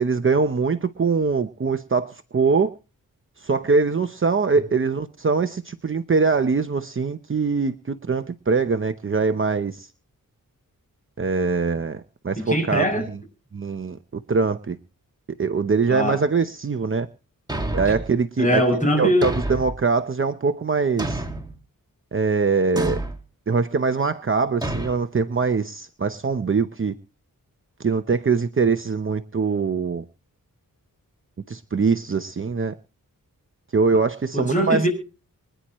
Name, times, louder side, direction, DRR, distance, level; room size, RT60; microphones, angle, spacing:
voice 1, 0.0-2.7 3.4-9.9 11.2-12.8 13.5-14.0 14.3-14.8 15.4-17.1 17.7-18.6 19.0-21.2 22.1-23.0 23.5-26.9 27.8-30.0 31.5-32.7 33.7-34.8, right 4 dB, 35° right, 0.8 m, -22 dB
voice 2, 12.4-13.1 15.9-16.2 18.4-19.3 34.3-34.9, equal, 20° left, 7.7 m, -21 dB
Thump thud, 17.5-18.1 19.2-19.8 21.0-21.5 22.8-23.2 24.6-24.9, right 1 dB, 10° right, 2.3 m, -28 dB
25.0 x 10.0 x 3.1 m
wide cardioid pair, 145°, 34 cm